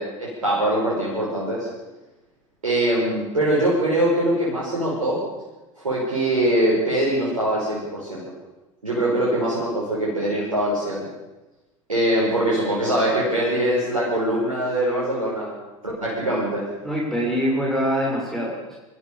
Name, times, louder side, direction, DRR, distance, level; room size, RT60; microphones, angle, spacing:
voice 1, 0.0-1.7 2.6-5.2 5.8-8.2 8.8-11.0 11.9-15.6 15.8-16.6, right 1 dB, 90° right, -6 dB, 6.1 m, -22 dB
voice 2, 16.8-18.8, equal, ahead, -4 dB, 7.0 m, -24 dB
26.5 x 14.0 x 7.0 m, 1.1 s
figure-of-eight pair, 80°, 17 cm